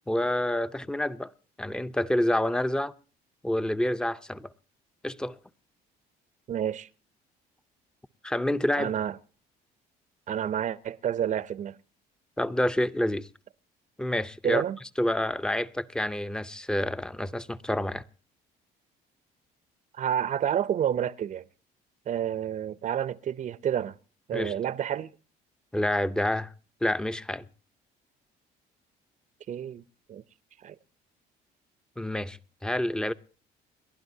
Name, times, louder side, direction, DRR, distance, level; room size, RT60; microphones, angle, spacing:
voice 1, 0.1-1.3 1.6-2.9 3.4-4.5 5.0-5.4 8.2-8.9 12.4-13.3 14.0-14.6 15.0-18.0 24.3-24.5 25.7-26.5 26.8-27.4 32.0-33.1, left 1 dB, 5° left, 0.6 m, -28 dB
voice 2, 6.5-6.9 8.8-9.2 10.3-11.8 14.4-14.8 20.0-21.4 22.1-24.0 24.3-25.1 29.5-29.8 30.1-30.2 30.6-30.8, right 9 dB, 45° right, 0.6 m, -29 dB
29.5 x 11.5 x 2.7 m
cardioid pair, 110°, 17 cm